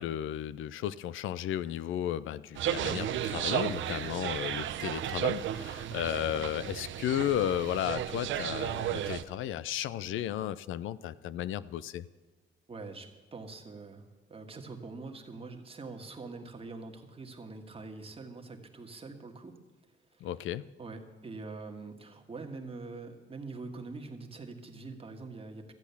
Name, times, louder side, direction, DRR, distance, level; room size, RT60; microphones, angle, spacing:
voice 1, 0.0-12.0 20.2-20.6, left 11 dB, 80° left, 17 dB, 0.5 m, -34 dB
sound 1, 2.5-9.2, right 11 dB, 75° right, 0.6 m, -34 dB
voice 2, 12.7-19.6 20.1-20.4 20.8-25.7, right 3 dB, 30° right, 4 dB, 1.6 m, -44 dB
13.5 x 8.3 x 7.0 m, 1.4 s
cardioid pair, 100°, 20 cm